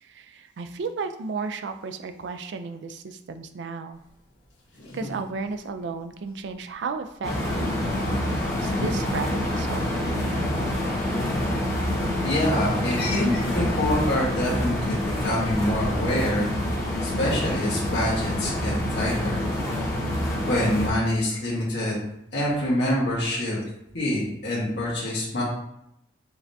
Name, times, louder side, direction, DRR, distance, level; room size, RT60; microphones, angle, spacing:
voice 1, 0.0-4.0 4.9-7.8 8.6-10.1, right 4 dB, 70° right, 8 dB, 0.4 m, -34 dB
sound 1, 3.9-19.8, left 1 dB, 85° left, 1.2 m, -42 dB
sound 2, 7.2-20.9, left 1 dB, 20° left, 1.4 m, -27 dB
voice 2, 12.2-16.7 17.0-19.4 20.5-22.0 22.3-23.6 23.9-25.4, left 1 dB, 65° left, -6 dB, 1.3 m, -26 dB
4.7 x 3.4 x 2.7 m, 0.78 s
head